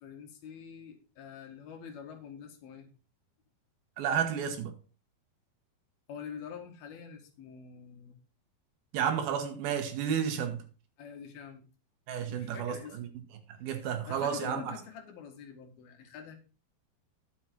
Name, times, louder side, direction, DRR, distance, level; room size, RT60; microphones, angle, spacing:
voice 1, 0.0-2.9 6.1-8.2 11.0-11.7 12.2-13.0 14.1-16.4, left 7 dB, 75° left, 3.6 m, -46 dB
voice 2, 4.0-4.7 8.9-10.6 12.1-13.1 13.6-14.7, right 8 dB, 80° right, 3.2 m, -31 dB
10.5 x 7.6 x 4.5 m
omnidirectional pair, 4.3 m